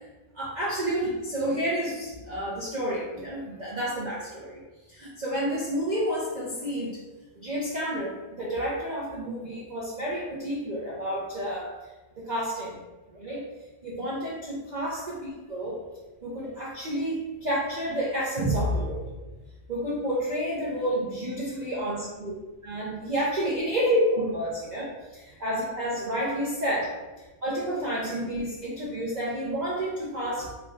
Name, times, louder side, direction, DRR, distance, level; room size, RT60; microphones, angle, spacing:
voice 1, 0.3-4.6 4.9-7.0 7.4-11.7 12.2-12.8 13.1-13.4 13.8-15.8 16.2-19.0 19.7-22.4 22.6-24.8 25.1-26.9 27.2-30.5, equal, 50° right, -6 dB, 0.5 m, -30 dB
3.6 x 2.3 x 4.5 m, 1.2 s
omnidirectional pair, 1.6 m